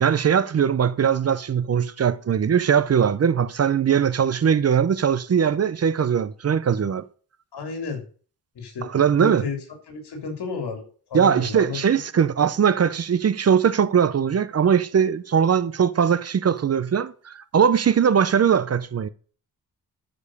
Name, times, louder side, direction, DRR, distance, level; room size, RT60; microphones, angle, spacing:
voice 1, 0.0-7.0 8.8-9.4 11.1-19.1, right 7 dB, 40° right, 0.6 m, -20 dB
voice 2, 7.5-8.0 8.6-8.8 9.1-9.6 9.9-10.8 11.1-11.8, left 5 dB, 85° left, 3.6 m, -31 dB
13.0 x 5.4 x 6.5 m
wide cardioid pair, 165°, 39 cm